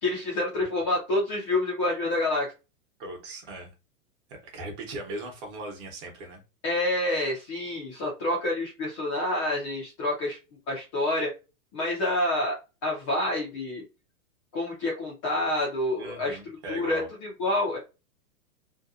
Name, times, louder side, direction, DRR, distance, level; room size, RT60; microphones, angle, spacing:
voice 1, 0.0-2.5 6.6-10.4 10.7-11.3 11.7-12.6 12.8-13.8 14.5-16.4 16.7-17.8, left 1 dB, 20° left, -4 dB, 0.5 m, -28 dB
voice 2, 3.0-3.7 4.3-6.4 16.0-17.1, right 1 dB, 35° right, 2 dB, 1.0 m, -38 dB
2.7 x 2.2 x 2.4 m, 0.28 s
hypercardioid pair, 155°, 45 cm